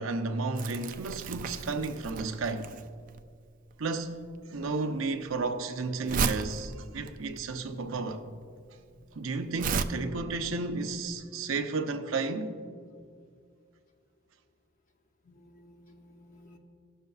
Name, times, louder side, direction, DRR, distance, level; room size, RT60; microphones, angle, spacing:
voice 1, 0.0-2.7 3.8-4.2 4.5-8.3 9.2-12.6, right 3 dB, 80° right, 0.6 m, -32 dB
Crumpling crinkling, 0.6-9.8, right 5 dB, 40° right, 0.3 m, -35 dB
voice 2, 8.6-9.2 13.0-13.2 15.2-16.6, left 1 dB, 40° left, 0.8 m, -57 dB
17.0 x 6.6 x 2.4 m
head